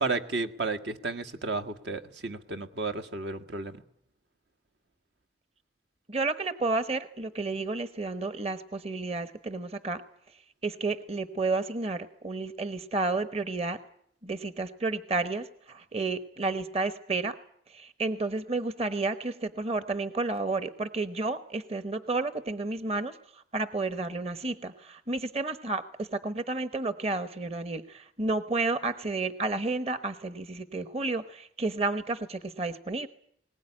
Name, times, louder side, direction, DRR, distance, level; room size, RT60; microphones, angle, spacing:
voice 1, 0.0-3.8, right 3 dB, 75° right, 7 dB, 1.6 m, -32 dB
voice 2, 6.1-10.0 10.6-13.8 14.2-17.4 17.7-33.1, right 3 dB, 35° right, 11 dB, 1.0 m, -31 dB
21.0 x 19.5 x 9.8 m, 0.68 s
head